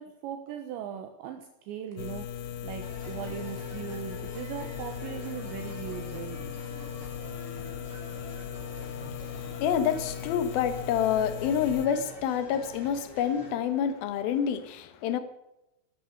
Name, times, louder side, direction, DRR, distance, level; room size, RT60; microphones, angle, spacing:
voice 1, 0.0-6.4, right 9 dB, 75° right, 3.2 m, -39 dB
sound 1, 2.0-11.9, left 9 dB, 90° left, 1.9 m, -38 dB
sound 2, 2.8-13.5, right 2 dB, 35° right, 6.6 m, -47 dB
voice 2, 8.9-15.2, left 8 dB, 65° left, 2.6 m, -28 dB
15.0 x 12.5 x 6.7 m
omnidirectional pair, 5.5 m